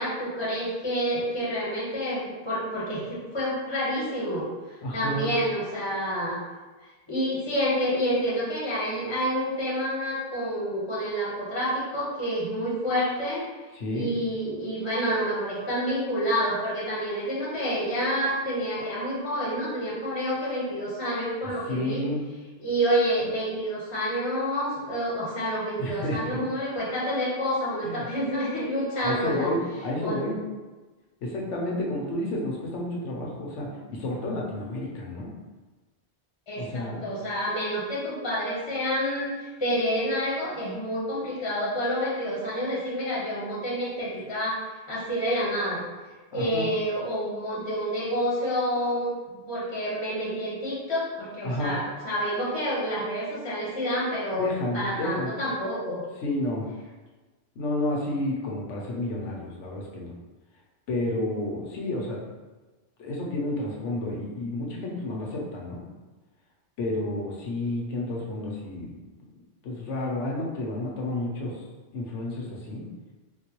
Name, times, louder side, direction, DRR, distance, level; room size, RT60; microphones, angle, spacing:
voice 1, 0.0-4.5 4.9-6.4 7.1-13.4 13.9-22.0 22.6-29.5 30.0-30.2 36.5-44.6 44.9-45.8 46.3-49.1 49.5-54.5 54.7-56.0, equal, 25° left, -7 dB, 0.8 m, -28 dB
voice 2, 4.8-5.3 13.7-14.1 21.7-22.2 25.8-26.4 27.8-28.1 29.0-30.3 31.2-35.3 36.6-37.0 46.3-46.6 51.4-51.8 54.3-55.3 56.2-56.6 57.5-60.1 60.9-62.2 63.0-65.8 66.8-68.9 69.6-71.6 71.9-72.8, left 1 dB, 85° left, -2 dB, 1.1 m, -30 dB
3.8 x 2.2 x 2.9 m, 1.3 s
omnidirectional pair, 1.2 m